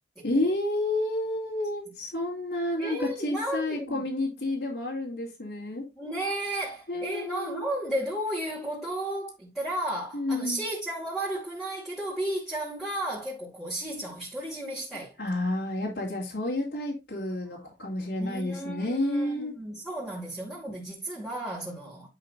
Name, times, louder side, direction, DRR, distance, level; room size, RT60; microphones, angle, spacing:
voice 1, 0.2-5.9 6.9-7.7 10.1-10.6 15.2-19.5, left 1 dB, 85° left, 2.7 m, -30 dB
voice 2, 2.8-4.0 5.9-15.1 18.2-22.1, right 1 dB, ahead, 2.4 m, -33 dB
10.5 x 5.8 x 2.6 m
head